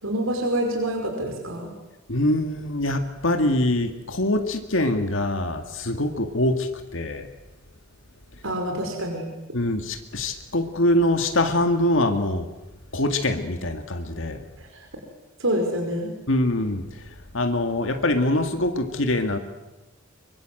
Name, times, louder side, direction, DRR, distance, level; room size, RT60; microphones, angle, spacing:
voice 1, 0.0-1.7 8.4-9.2 14.6-14.9 15.4-16.1, right 1 dB, 85° right, 2 dB, 5.1 m, -26 dB
voice 2, 2.1-7.3 9.5-12.5 12.9-14.4 16.3-19.4, left 1 dB, 65° left, 6 dB, 2.0 m, -24 dB
24.5 x 24.0 x 7.8 m, 1.0 s
head